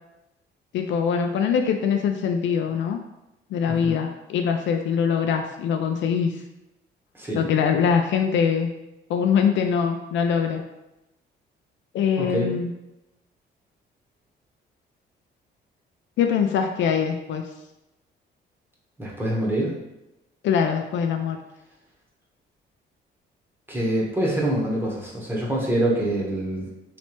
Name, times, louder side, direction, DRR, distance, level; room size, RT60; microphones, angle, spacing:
voice 1, 0.7-3.0 3.5-6.3 7.4-8.7 9.1-10.6 11.9-12.7 16.2-17.4 20.4-21.4, left 7 dB, 70° left, 4 dB, 0.4 m, -23 dB
voice 2, 3.7-4.0 7.1-7.5 12.2-12.5 19.0-19.7 23.7-26.7, right 1 dB, 10° right, -3 dB, 1.1 m, -25 dB
3.2 x 3.1 x 3.0 m, 0.92 s
cardioid pair, 90°, 20 cm